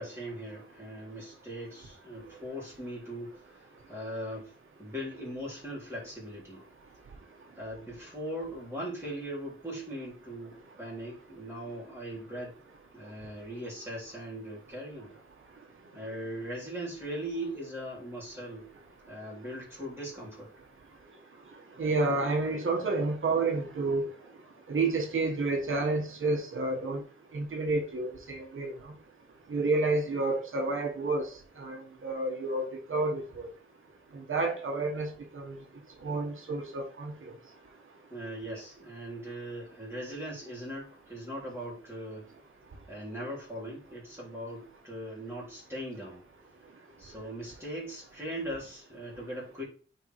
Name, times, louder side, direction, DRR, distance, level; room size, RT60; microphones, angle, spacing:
voice 1, 0.0-4.5 4.8-6.6 7.6-12.6 12.9-15.2 15.9-18.7 19.1-20.5 38.1-42.3 42.9-46.2 47.0-49.6, equal, 10° right, 3.3 m, -40 dB
voice 2, 21.8-24.1 24.7-27.0 27.3-28.7 29.5-31.3 31.6-33.5 34.3-35.1 35.3-35.6 36.0-37.1, right 3 dB, 70° right, 1.3 m, -30 dB
9.6 x 3.9 x 3.1 m
cardioid pair, 70°, 21 cm